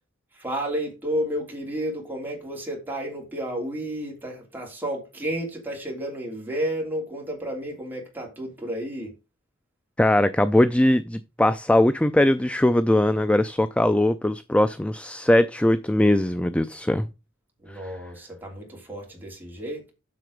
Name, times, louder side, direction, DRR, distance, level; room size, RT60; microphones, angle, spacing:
voice 1, 0.3-9.1 17.6-19.9, right 1 dB, 10° right, 3.1 m, -31 dB
voice 2, 10.0-17.1 17.7-17.8, left 1 dB, 5° left, 0.3 m, -20 dB
7.7 x 6.7 x 5.1 m
head